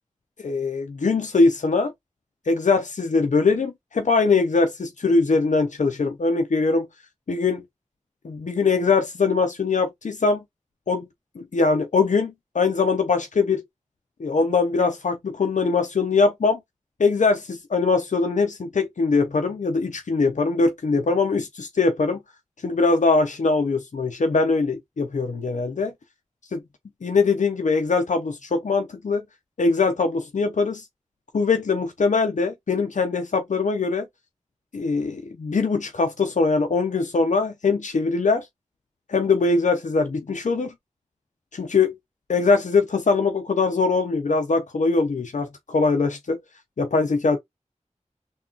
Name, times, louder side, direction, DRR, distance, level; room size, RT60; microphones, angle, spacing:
voice 1, 0.4-1.9 2.5-6.9 7.3-7.6 8.2-10.4 10.9-11.1 11.4-13.6 14.2-16.6 17.0-22.2 22.6-25.9 26.5-26.6 27.0-29.2 29.6-30.8 31.3-34.1 34.7-38.5 39.1-40.7 41.5-41.9 42.3-46.4 46.8-47.4, left 4 dB, 75° left, 0.5 m, -22 dB
3.6 x 2.2 x 2.3 m
wide cardioid pair, 60°, 13 cm